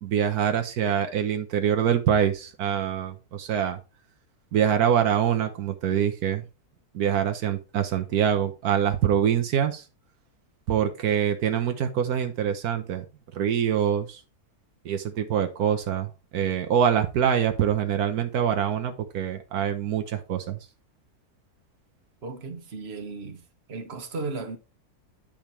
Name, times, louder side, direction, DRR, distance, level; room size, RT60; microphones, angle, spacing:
voice 1, 0.0-3.8 4.5-6.4 6.9-9.8 10.7-13.0 13.3-14.2 14.8-20.6, right 8 dB, 80° right, 1.4 m, -25 dB
voice 2, 22.2-24.6, right 3 dB, 45° right, 1.5 m, -35 dB
9.0 x 5.1 x 4.4 m
omnidirectional pair, 1.6 m